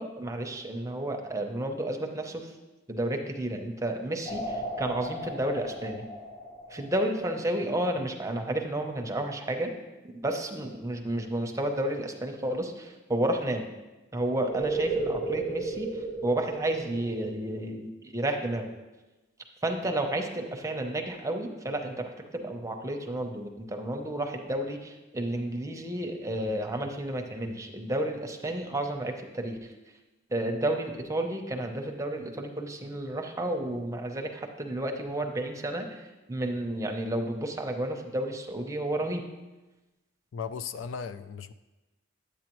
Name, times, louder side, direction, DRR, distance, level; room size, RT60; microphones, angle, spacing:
voice 1, 0.0-2.4 2.9-6.0 6.7-9.7 10.2-13.7 14.1-15.9 16.2-18.7 19.6-29.6 30.3-36.0 36.3-39.2, right 1 dB, 15° right, 3 dB, 0.7 m, -31 dB
sound 1, 4.3-7.6 14.5-17.3, right 2 dB, 35° left, 1.4 m, -34 dB
voice 2, 40.3-41.5, left 6 dB, 65° left, 13 dB, 0.3 m, -36 dB
9.5 x 8.3 x 3.0 m, 1.1 s
head